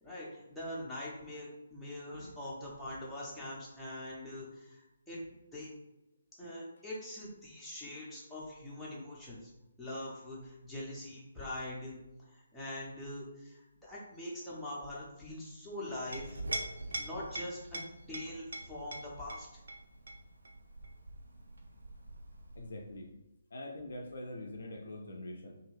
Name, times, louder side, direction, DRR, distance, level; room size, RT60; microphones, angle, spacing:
voice 1, 0.0-5.2 5.5-5.7 6.4-9.5 9.8-12.0 12.3-16.4 17.0-17.8 18.1-19.5, left 1 dB, ahead, -8 dB, 0.8 m, -43 dB
Chink clink, 15.9-23.0, right 2 dB, 70° right, 0.4 m, -43 dB
voice 2, 22.6-23.1 23.5-25.6, left 1 dB, 60° left, 2 dB, 0.4 m, -44 dB
2.6 x 2.5 x 3.1 m, 0.95 s
figure-of-eight pair, 140°, 0 cm